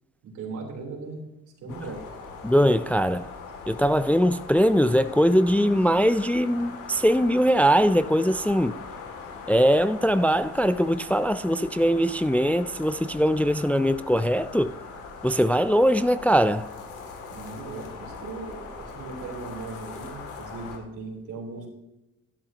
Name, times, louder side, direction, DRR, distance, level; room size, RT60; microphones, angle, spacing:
voice 1, 0.2-1.2 1.6-2.0 17.3-21.7, right 3 dB, 80° right, 3.6 m, -38 dB
sound 1, 1.7-20.8, left 4 dB, 85° left, 2.5 m, -41 dB
voice 2, 2.4-3.3 3.7-8.8 9.5-14.7 15.2-16.7, equal, 5° left, 0.3 m, -21 dB
12.0 x 12.0 x 2.9 m
cardioid pair, 90°, 30 cm